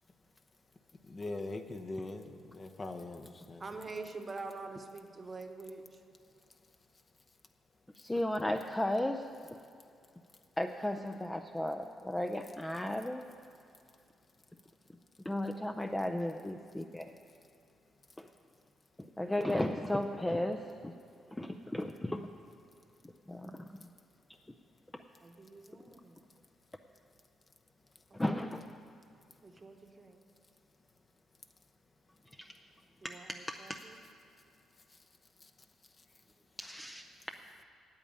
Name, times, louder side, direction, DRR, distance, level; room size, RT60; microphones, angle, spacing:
voice 1, 1.0-3.7 34.9-35.0 35.4-35.5 36.0-36.1, left 2 dB, 30° left, 7 dB, 0.8 m, -42 dB
voice 2, 3.6-6.0 15.8-16.0 16.3-16.6 25.2-26.2 28.1-28.2 29.4-30.2 33.0-34.0, right 3 dB, 30° right, 6 dB, 1.0 m, -46 dB
voice 3, 8.0-9.3 10.6-13.2 15.2-17.1 18.2-18.3 19.0-20.9 21.3-22.2 23.3-23.9 28.1-28.6 32.4-32.5 33.0-33.8 36.6-37.0, left 1 dB, 10° left, 5 dB, 0.5 m, -35 dB
8.7 x 8.5 x 8.8 m, 2.5 s
cardioid pair, 90°, 0 cm